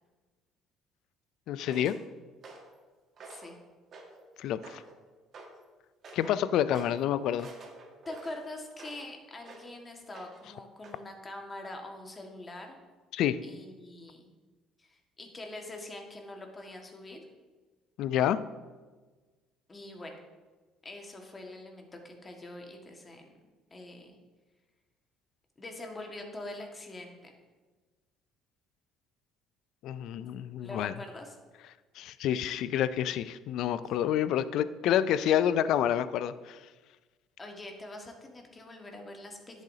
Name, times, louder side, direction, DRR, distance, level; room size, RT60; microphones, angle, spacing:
voice 1, 1.5-1.9 4.4-4.8 6.1-7.5 13.1-13.4 18.0-18.4 29.8-30.9 32.0-36.6, left 10 dB, 65° left, 15 dB, 0.4 m, -28 dB
sound 1, 1.7-2.0 2.4-2.8 3.2-3.6 3.9-4.3 4.6-5.0 5.3-5.6 6.0-6.4 6.7-7.0 7.4-9.1 9.4-9.7 10.1-10.5 10.8-11.0, right 3 dB, 50° right, 1.8 m, -49 dB
voice 2, 3.2-3.6 8.1-12.8 13.4-14.3 14.8-17.2 19.7-20.2 20.8-23.3 23.7-24.2 25.6-27.3 30.6-31.4 37.4-39.6, left 2 dB, 30° left, 2 dB, 1.7 m, -44 dB
10.5 x 8.0 x 2.8 m, 1.3 s
hypercardioid pair, 65°, 0 cm